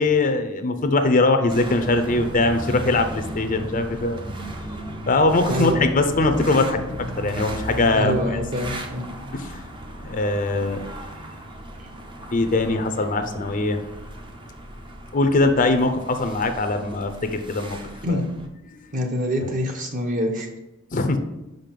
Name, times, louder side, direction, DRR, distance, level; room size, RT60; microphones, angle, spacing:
voice 1, 0.0-4.2 5.1-8.4 9.3-9.6 10.0-10.8 12.3-13.8 15.1-17.8 18.1-18.2 18.7-18.8 20.9-21.2, left 2 dB, 40° left, 7 dB, 0.6 m, -21 dB
sound 1, 1.5-18.5, right 1 dB, 20° right, 0.7 m, -36 dB
voice 2, 5.5-5.9 7.9-9.1 18.0-18.2 18.9-20.5, left 1 dB, 40° right, 3 dB, 1.0 m, -25 dB
5.5 x 5.2 x 5.8 m, 0.96 s
head